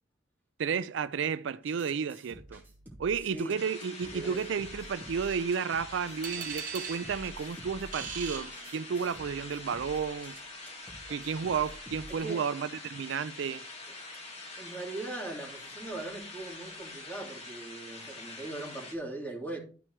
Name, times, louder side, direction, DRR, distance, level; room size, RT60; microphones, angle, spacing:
voice 1, 0.6-2.6 3.0-10.4 11.1-13.7, right 6 dB, 70° right, 0.4 m, -32 dB
sound 1, 1.7-12.1, right 1 dB, 10° right, 2.2 m, -50 dB
voice 2, 3.2-3.6 4.1-4.4 12.1-12.4 14.6-19.6, right 2 dB, 10° left, 2.7 m, -40 dB
sound 2, 3.6-18.9, left 2 dB, 35° left, 1.7 m, -45 dB
sound 3, 6.2-9.3, right 7 dB, 45° right, 1.5 m, -41 dB
11.5 x 4.5 x 4.5 m
head